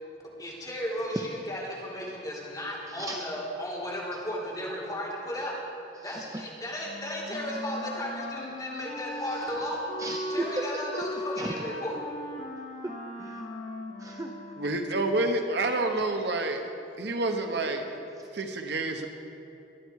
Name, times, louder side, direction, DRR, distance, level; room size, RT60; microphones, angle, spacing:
voice 1, 0.4-5.5 6.0-9.8 10.3-12.0, equal, 20° left, -6 dB, 3.8 m, -35 dB
voice 2, 2.9-3.3 4.1-4.2 5.9-6.4 9.1-9.7 10.0-11.1 11.3-11.6 12.6-13.5 14.0-14.4, right 1 dB, 20° right, 3 dB, 0.6 m, -37 dB
Wind instrument woodwind instrument, 6.8-15.1, left 1 dB, 45° left, 2.2 m, -38 dB
voice 3, 14.6-16.6 17.0-17.9 18.3-19.1, right 2 dB, 65° right, 5 dB, 1.1 m, -28 dB
22.5 x 9.6 x 4.7 m, 2.7 s
head